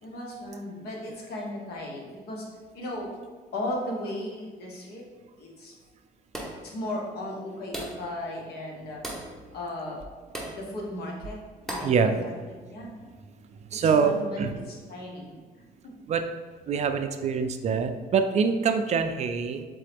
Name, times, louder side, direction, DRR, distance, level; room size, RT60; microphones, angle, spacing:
voice 1, 0.0-2.5 2.7-3.1 3.5-5.0 5.4-5.7 6.6-9.0 9.5-10.0 10.5-11.4 11.7-11.9 12.1-12.3 12.7-12.9 13.8-14.4 14.7-15.4 15.8-15.9, left 1 dB, 70° left, -1 dB, 1.2 m, -36 dB
sound 1, 6.3-6.7 7.7-8.1 9.0-9.3 10.3-10.6 11.7-12.0, right 1 dB, ahead, 0.8 m, -36 dB
voice 2, 11.8-12.1 13.7-14.5 16.1-16.3 16.7-19.6, right 5 dB, 40° right, 7 dB, 0.4 m, -24 dB
3.8 x 3.7 x 3.5 m, 1.4 s
cardioid pair, 110°, 17 cm